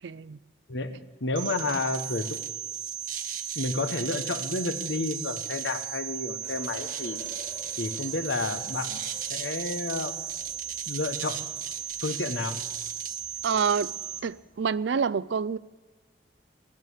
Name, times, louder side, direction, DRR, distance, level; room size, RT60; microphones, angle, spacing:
voice 1, 0.0-0.4 13.4-15.6, right 6 dB, 75° right, 0.4 m, -28 dB
voice 2, 0.7-2.4 3.5-7.2 7.8-9.0 9.3-10.1 10.9-11.5 12.0-12.6, left 2 dB, 75° left, 1.2 m, -31 dB
sound 1, 1.4-14.2, right 8 dB, 45° right, 0.9 m, -35 dB
sound 2, 6.4-14.8, left 2 dB, 50° left, 4.4 m, -52 dB
20.0 x 7.5 x 8.2 m
head